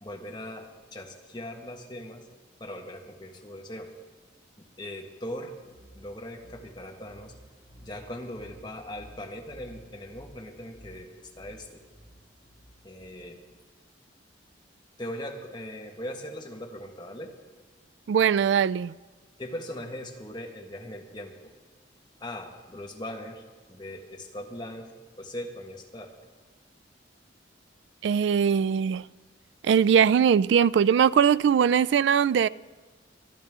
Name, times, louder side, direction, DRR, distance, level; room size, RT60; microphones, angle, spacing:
voice 1, 0.0-2.3 2.6-3.9 4.6-5.6 5.9-7.3 7.8-11.8 12.8-13.4 15.0-17.3 19.4-21.5 22.2-26.2, left 1 dB, 25° left, 1.6 m, -40 dB
sound 1, 5.5-13.5, equal, 15° right, 4.0 m, -53 dB
voice 2, 18.1-18.9 28.0-29.1 29.6-32.5, right 7 dB, 70° right, 0.3 m, -21 dB
23.0 x 11.0 x 3.7 m
head